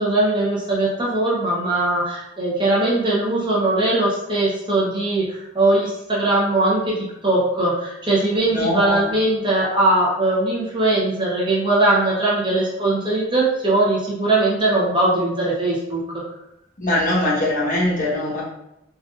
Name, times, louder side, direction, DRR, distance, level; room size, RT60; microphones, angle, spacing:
voice 1, 0.0-16.2, right 2 dB, 25° right, -5 dB, 0.6 m, -20 dB
voice 2, 8.5-9.0 16.8-18.4, left 1 dB, 40° left, -7 dB, 1.0 m, -21 dB
3.7 x 2.4 x 2.4 m, 0.85 s
head